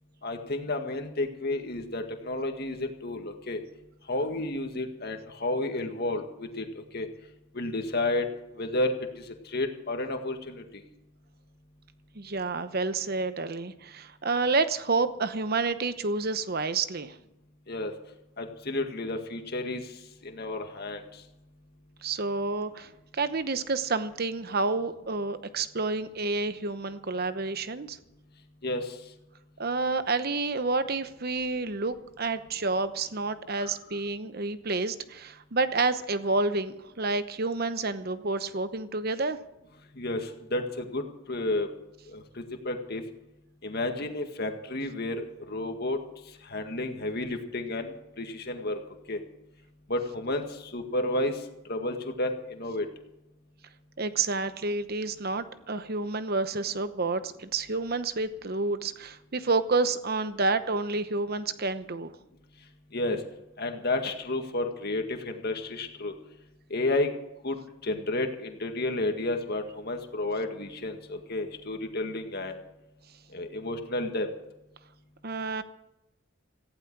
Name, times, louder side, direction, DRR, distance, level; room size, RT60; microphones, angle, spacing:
voice 1, 0.2-3.6 4.1-7.1 7.5-8.2 8.6-8.9 9.5-10.6 17.7-17.9 18.4-19.8 20.2-21.0 28.6-28.9 33.6-33.7 40.0-41.0 41.3-41.7 42.1-43.0 43.6-46.0 46.5-48.8 49.1-49.2 49.9-51.3 51.7-52.9 62.9-63.2 63.6-66.1 66.7-67.1 67.4-67.6 67.8-72.5 73.3-74.3, left 2 dB, 50° left, 5 dB, 1.9 m, -31 dB
voice 2, 12.2-17.1 22.0-22.9 23.1-28.0 29.6-39.4 54.0-62.1 75.2-75.6, right 3 dB, 45° right, 12 dB, 0.9 m, -29 dB
17.0 x 15.5 x 4.7 m, 0.91 s
head